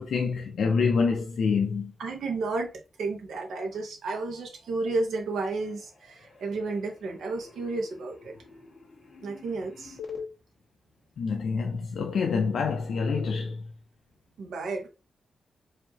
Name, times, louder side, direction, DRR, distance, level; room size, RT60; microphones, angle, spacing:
voice 1, 0.0-1.9 11.2-13.7, left 5 dB, 65° left, 0.5 m, -26 dB
voice 2, 2.0-2.7 3.0-8.3 9.2-10.0 14.4-14.9, right 3 dB, 85° right, 1.0 m, -32 dB
sound 1, 4.3-4.8 5.1-10.2, left 5 dB, 20° left, 1.6 m, -46 dB
4.8 x 2.7 x 2.8 m
wide cardioid pair, 180°, 0 cm